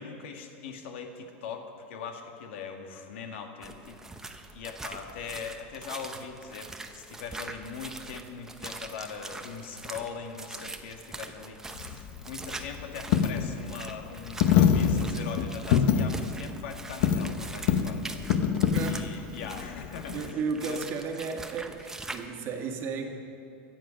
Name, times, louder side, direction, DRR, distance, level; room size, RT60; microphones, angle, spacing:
voice 1, 0.0-18.1 18.8-20.4 20.6-20.8, left 6 dB, 80° left, 4 dB, 1.7 m, -41 dB
sound 1, 3.6-22.3, right 2 dB, 10° right, 0.7 m, -43 dB
Coin (dropping), 11.8-20.3, left 8 dB, 65° left, 0.9 m, -26 dB
voice 2, 18.7-19.1 20.1-23.1, right 5 dB, 40° right, 3 dB, 1.6 m, -34 dB
23.5 x 7.8 x 5.1 m, 2.5 s
supercardioid pair, 145°, 6 cm